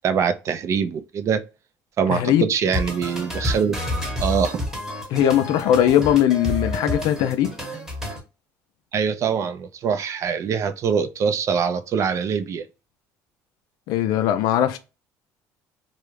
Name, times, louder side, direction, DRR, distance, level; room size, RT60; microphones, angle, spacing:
voice 1, 0.0-1.4 2.0-3.8 4.2-4.6 8.9-12.6, right 6 dB, 45° right, 0.4 m, -23 dB
voice 2, 2.1-2.5 5.1-7.5 13.9-14.8, left 11 dB, 75° left, 0.4 m, -19 dB
sound 1, 2.7-8.2, left 1 dB, 5° right, 0.9 m, -29 dB
2.3 x 2.0 x 3.0 m
supercardioid pair, 100°, 7 cm